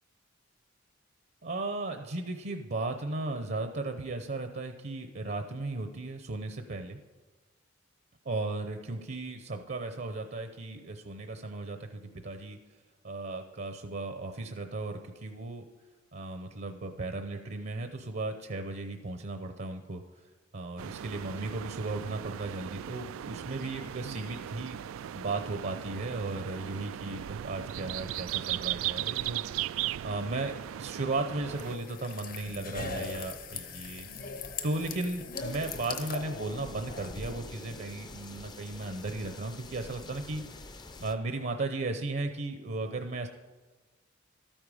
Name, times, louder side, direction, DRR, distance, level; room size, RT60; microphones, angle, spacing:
voice 1, 1.4-7.0 8.2-12.6 13.0-15.6 16.1-20.0 20.5-24.8 25.1-34.1 34.6-40.4 41.0-43.3, right 2 dB, 50° right, 6 dB, 0.7 m, -36 dB
sound 1, 20.8-31.8, right 12 dB, 85° right, 0.3 m, -37 dB
sound 2, 31.5-37.1, left 5 dB, 45° left, 0.9 m, -40 dB
sound 3, 35.3-41.1, left 2 dB, 20° left, 0.5 m, -46 dB
13.0 x 8.9 x 4.9 m, 1.3 s
head